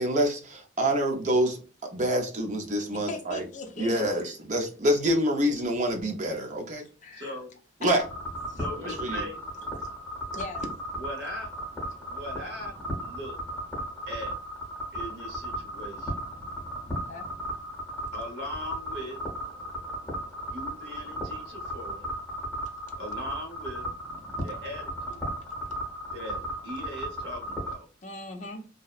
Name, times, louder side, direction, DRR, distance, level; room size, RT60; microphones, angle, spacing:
voice 1, 0.0-3.4 3.8-6.9 7.8-8.0 9.0-9.3, equal, 40° right, 0.5 m, -26 dB
voice 2, 3.1-4.0 7.0-7.3 7.8-8.0 8.5-9.0 9.7-9.9 10.3-10.7 17.0-17.3 28.0-28.7, left 3 dB, 40° left, 0.4 m, -39 dB
voice 3, 7.1-7.5 8.6-9.4 11.0-11.5 12.0-12.7 13.0-13.4 14.1-14.3 14.9-16.1 18.1-19.2 20.5-22.0 23.0-23.9 24.4-25.4 26.1-27.9, equal, 60° right, 0.9 m, -39 dB
sound 1, 8.0-27.8, equal, 5° left, 0.7 m, -36 dB
2.6 x 2.0 x 2.3 m
head